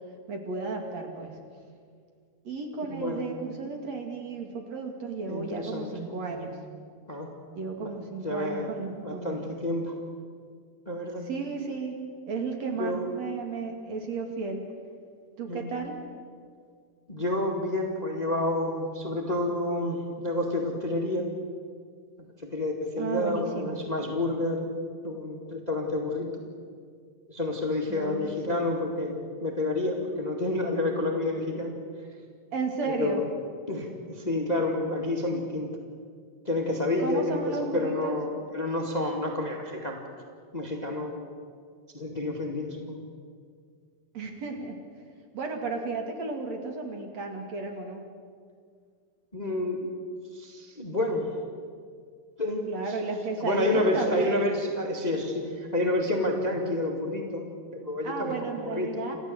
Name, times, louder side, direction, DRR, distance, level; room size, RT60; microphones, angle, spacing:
voice 1, 0.3-1.4 2.4-6.6 7.5-9.6 11.2-12.0 12.3-14.6 15.4-16.0 23.0-23.8 27.9-28.8 32.5-33.2 37.0-38.2 44.1-44.8 45.3-48.0 52.7-54.5 58.0-59.2, right 3 dB, 55° right, 3 dB, 3.3 m, -33 dB
voice 2, 2.9-3.2 5.3-5.9 7.1-7.3 7.8-7.9 8.2-10.0 10.8-11.2 12.8-13.1 15.5-15.6 17.1-21.3 22.4-24.7 25.0-26.3 27.3-31.7 32.8-33.2 33.7-35.7 36.4-40.2 40.5-41.3 41.9-43.0 49.3-49.9 50.3-51.3 52.4-53.0 53.4-57.4 57.7-58.9, left 1 dB, 15° left, 1 dB, 1.7 m, -29 dB
28.5 x 14.5 x 7.9 m, 2.1 s
omnidirectional pair, 3.6 m